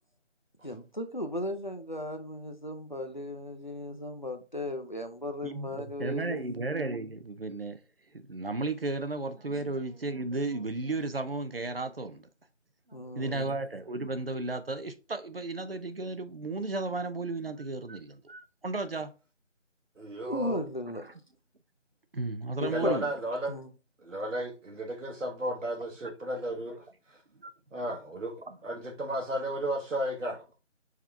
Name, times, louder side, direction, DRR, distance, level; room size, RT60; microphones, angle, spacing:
voice 1, 0.6-6.4 12.9-13.6 20.2-21.0 22.6-23.0 23.5-23.7, left 1 dB, 40° left, 0.5 m, -36 dB
voice 2, 5.4-7.8 8.3-12.2 12.9-19.1 22.1-23.1 27.4-27.5 27.9-28.0 28.5-28.6, right 3 dB, 50° right, 0.5 m, -34 dB
voice 3, 20.0-20.6 22.7-23.6 24.0-27.2 27.7-30.5, right 1 dB, 85° right, 1.1 m, -34 dB
4.8 x 2.9 x 3.3 m
figure-of-eight pair, 175°, 37 cm